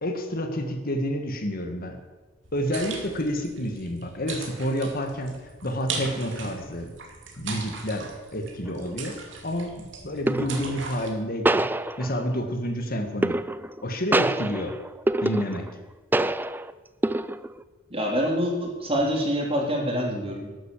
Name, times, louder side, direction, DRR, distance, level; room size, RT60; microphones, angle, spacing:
voice 1, 0.0-2.0 2.5-5.4 5.6-6.9 7.4-11.6 12.0-13.4 13.8-14.7 15.2-15.7, equal, 50° left, 5 dB, 1.9 m, -29 dB
sound 1, 2.4-11.1, right 4 dB, 70° right, 2.5 m, -39 dB
sound 2, 8.7-8.9 10.3-10.8 11.5-12.4 13.2-13.8 14.1-15.8 16.1-16.7 17.0-17.6, right 1 dB, 10° right, 0.4 m, -25 dB
voice 2, 17.9-20.5, equal, 30° right, 0 dB, 3.6 m, -26 dB
12.5 x 12.0 x 7.4 m, 1.3 s
head